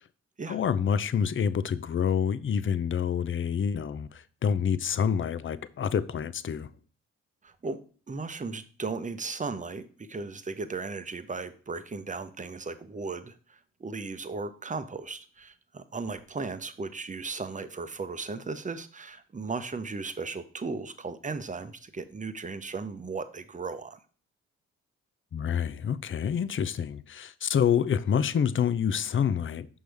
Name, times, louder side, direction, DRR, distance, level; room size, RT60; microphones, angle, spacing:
voice 1, 0.5-6.7 25.3-29.7, left 7 dB, 35° left, 0.6 m, -27 dB
voice 2, 7.4-24.0, right 4 dB, 25° right, 0.8 m, -36 dB
6.1 x 5.4 x 3.4 m
hypercardioid pair, 45°, 33 cm